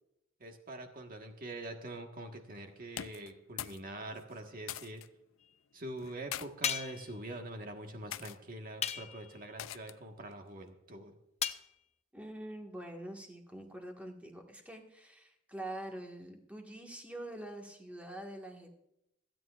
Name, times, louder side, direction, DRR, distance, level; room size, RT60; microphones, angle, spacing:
voice 1, 0.4-5.0 5.7-11.1, right 1 dB, 45° right, 3 dB, 1.6 m, -44 dB
sound 1, 2.9-3.9 4.1-5.1 6.0-6.5 7.2-7.5 8.1-8.4 9.6-10.1, left 11 dB, 80° left, 0.5 m, -43 dB
sound 2, 6.6-7.1 8.8-9.3 11.4-11.7, left 8 dB, 35° left, 0.6 m, -35 dB
voice 2, 12.1-18.7, right 1 dB, 5° right, 1 dB, 1.7 m, -45 dB
26.5 x 9.2 x 2.5 m, 0.83 s
head